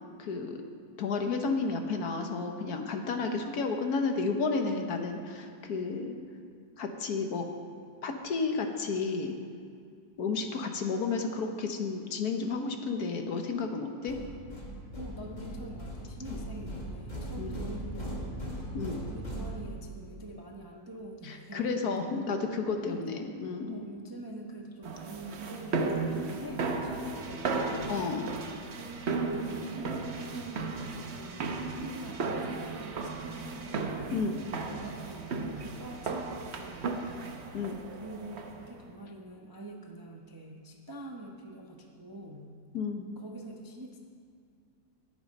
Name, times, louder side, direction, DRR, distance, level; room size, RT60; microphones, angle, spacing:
voice 1, 0.2-0.6 1.0-6.1 6.8-7.5 8.0-9.3 10.2-14.2 17.4-17.6 18.7-19.0 21.2-23.8 27.9-28.3 34.1-34.4 37.5-37.8 42.7-43.1, left 4 dB, 65° left, 5 dB, 1.4 m, -32 dB
sound 1, 14.1-20.1, right 1 dB, 25° left, 1.8 m, -39 dB
voice 2, 15.0-18.6 19.1-21.9 22.8-23.1 23.7-28.0 28.7-34.1 34.7-37.5 37.9-42.5 43.2-44.0, right 1 dB, 20° right, 0 dB, 0.6 m, -45 dB
sound 2, 24.8-38.7, right 3 dB, 50° right, 0.9 m, -35 dB
19.5 x 7.0 x 5.3 m, 2.2 s
omnidirectional pair, 1.8 m